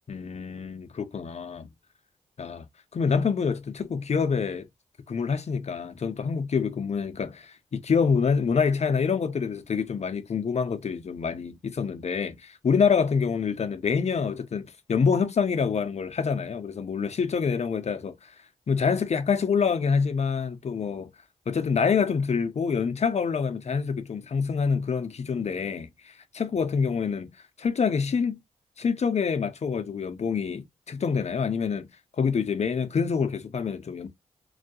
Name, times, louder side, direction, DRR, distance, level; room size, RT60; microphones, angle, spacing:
voice 1, 0.1-1.7 2.4-2.6 2.9-4.7 5.1-18.3 18.7-21.1 21.5-27.3 27.6-28.4 28.8-31.9 32.2-34.1, left 6 dB, 50° left, 0.6 m, -26 dB
2.2 x 2.1 x 2.6 m
supercardioid pair, 45°, 14 cm